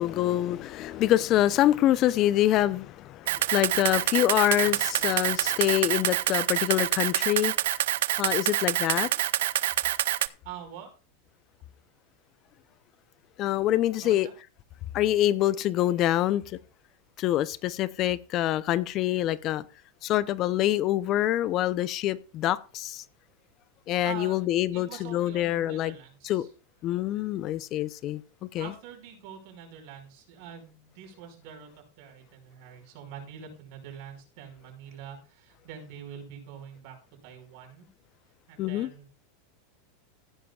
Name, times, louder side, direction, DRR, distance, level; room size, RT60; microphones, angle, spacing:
voice 1, 0.0-7.5 8.2-9.1 13.4-14.3 14.9-16.6 17.2-19.6 20.0-23.0 23.9-25.9 26.2-26.5 26.8-28.7 38.6-38.9, left 13 dB, 45° left, 0.6 m, -25 dB
Camera, 3.3-10.3, right 13 dB, 75° right, 0.5 m, -26 dB
voice 2, 10.4-10.9 14.0-14.3 24.0-26.5 28.6-37.0 37.2-37.9 38.5-39.1, right 8 dB, 60° right, 5.1 m, -45 dB
15.5 x 11.0 x 2.4 m
hypercardioid pair, 115°, 0 cm